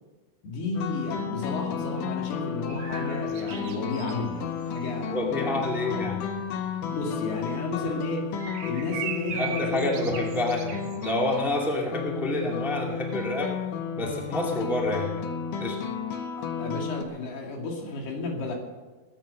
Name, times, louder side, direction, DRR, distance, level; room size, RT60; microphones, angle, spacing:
voice 1, 0.4-6.0 6.8-8.3 8.6-10.1 11.6-11.7 16.4-18.6, left 3 dB, 85° left, 1 dB, 4.4 m, -33 dB
sound 1, 0.7-17.0, left 6 dB, 70° left, 2.2 m, -33 dB
sound 2, 2.7-13.8, right 8 dB, 80° right, 1.2 m, -42 dB
voice 2, 5.1-6.5 7.9-8.0 9.3-13.6 14.0-15.3 15.6-15.8, left 1 dB, ahead, -1 dB, 1.2 m, -28 dB
20.0 x 9.0 x 6.4 m, 1.2 s
omnidirectional pair, 4.4 m